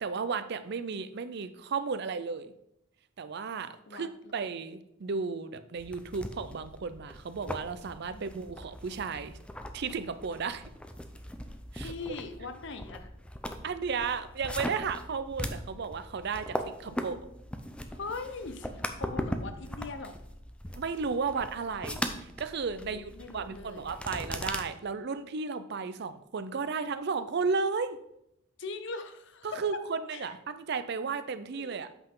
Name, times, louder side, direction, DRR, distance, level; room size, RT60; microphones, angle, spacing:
voice 1, 0.0-2.5 3.2-9.4 9.7-10.7 11.7-11.9 13.6-17.2 20.7-28.0 29.4-31.9, right 5 dB, 55° right, 12 dB, 0.5 m, -34 dB
voice 2, 3.9-4.3 8.1-8.3 11.7-13.1 16.8-17.1 17.9-20.2 22.8-23.9 28.6-29.6 30.1-30.3 31.5-31.7, left 4 dB, 60° left, 8 dB, 0.7 m, -41 dB
sound 1, 5.8-24.6, equal, 5° left, 0.5 m, -40 dB
8.0 x 5.7 x 3.8 m, 0.79 s
head